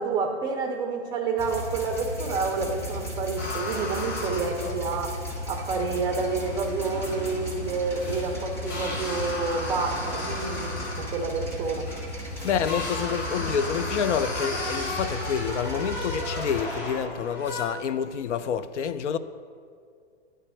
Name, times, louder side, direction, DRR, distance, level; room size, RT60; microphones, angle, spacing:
voice 1, 0.0-5.1 5.5-10.7 11.1-11.8 13.0-13.2, right 4 dB, 10° right, 0.4 m, -29 dB
sound 1, 1.4-16.6, left 1 dB, 10° left, 1.0 m, -35 dB
sound 2, 3.4-17.6, left 2 dB, 25° left, 1.6 m, -35 dB
voice 2, 12.4-19.2, left 7 dB, 90° left, 0.5 m, -28 dB
9.8 x 3.4 x 6.1 m
hypercardioid pair, 135°, 34 cm